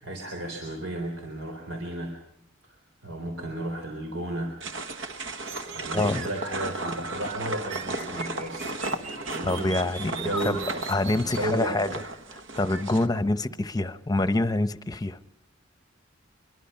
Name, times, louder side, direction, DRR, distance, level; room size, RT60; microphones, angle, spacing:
voice 1, 0.0-2.2 2.6-2.8 3.0-4.6 5.7-9.8 10.1-10.8 11.2-11.9 13.3-13.4, right 1 dB, 85° right, 4.0 m, -33 dB
sound 1, 4.6-13.1, right 2 dB, 70° right, 1.4 m, -35 dB
sound 2, 5.4-11.4, right 4 dB, 40° right, 4.0 m, -41 dB
voice 2, 5.9-6.3 9.4-10.2 10.4-10.5 10.9-12.0 12.3-15.2, left 2 dB, 20° left, 0.8 m, -26 dB
25.0 x 23.0 x 5.7 m
head